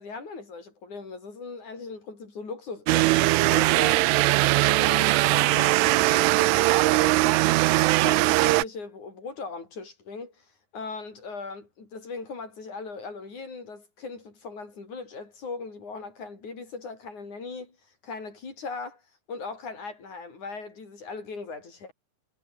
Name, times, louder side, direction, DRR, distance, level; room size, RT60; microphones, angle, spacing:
voice 1, 0.0-4.1 4.4-10.5 10.7-17.8 18.0-19.0 19.3-21.9, left 4 dB, 35° left, 7.0 m, -39 dB
sound 1, 2.9-8.6, right 20 dB, 80° right, 3.1 m, -20 dB
omnidirectional pair, 5.9 m